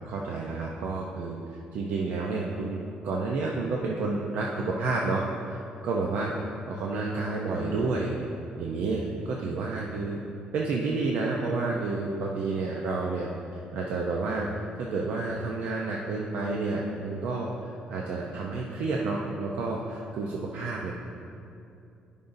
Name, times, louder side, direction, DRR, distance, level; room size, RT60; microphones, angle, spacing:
voice 1, 0.0-1.4 1.7-6.3 6.7-8.2 8.6-10.2 10.5-14.5 14.8-20.9, right 3 dB, 70° right, -2 dB, 0.6 m, -30 dB
14.0 x 5.4 x 2.6 m, 2.6 s
cardioid pair, 170°, 3 cm